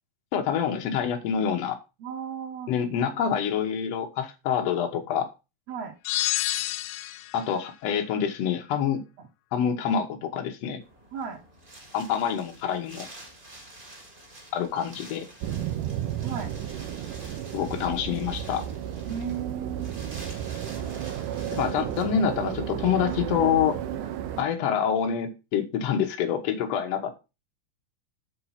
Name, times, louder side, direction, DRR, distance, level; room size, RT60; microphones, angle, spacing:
voice 1, 0.3-1.8 2.7-5.3 7.3-9.0 9.5-10.8 11.9-13.1 14.5-15.3 17.5-18.7 21.5-23.8 24.4-27.2, left 8 dB, 60° left, 4 dB, 2.1 m, -26 dB
voice 2, 2.0-2.7 5.7-6.0 11.1-11.4 16.2-16.5 19.1-20.0 24.0-24.1, right 7 dB, 60° right, 1 dB, 2.0 m, -35 dB
sound 1, 6.0-7.4, left 16 dB, 90° left, 1.6 m, -28 dB
Wind, 10.8-22.0, right 1 dB, 20° right, 1.3 m, -48 dB
sound 2, 15.4-24.4, right 10 dB, 75° right, 2.3 m, -33 dB
7.3 x 4.8 x 5.8 m, 0.28 s
omnidirectional pair, 4.0 m